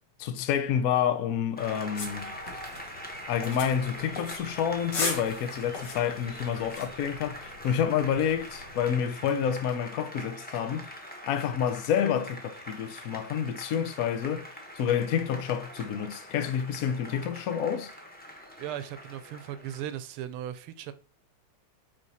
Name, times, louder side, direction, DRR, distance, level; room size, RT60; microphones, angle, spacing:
voice 1, 0.2-2.3 3.3-10.9 11.2-14.5 14.8-17.9, left 8 dB, 65° left, 0.9 m, -28 dB
Applause, 1.6-19.8, equal, 5° left, 0.8 m, -43 dB
sound 1, 2.0-8.9, left 3 dB, 80° left, 2.9 m, -39 dB
voice 2, 18.6-20.9, right 11 dB, 80° right, 1.5 m, -37 dB
9.1 x 3.5 x 4.2 m
omnidirectional pair, 2.4 m